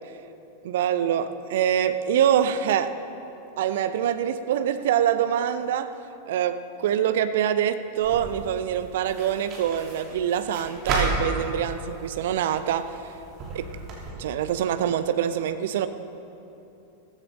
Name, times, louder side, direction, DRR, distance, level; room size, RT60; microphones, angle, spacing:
voice 1, 0.6-2.9 3.6-5.9 6.3-13.0 13.5-13.7 14.2-15.9, right 9 dB, 55° right, 11 dB, 0.6 m, -25 dB
sound 1, 8.0-14.1, right 2 dB, 35° right, 3.2 m, -33 dB
16.0 x 15.0 x 3.8 m, 2.9 s
figure-of-eight pair, 90°, 0 cm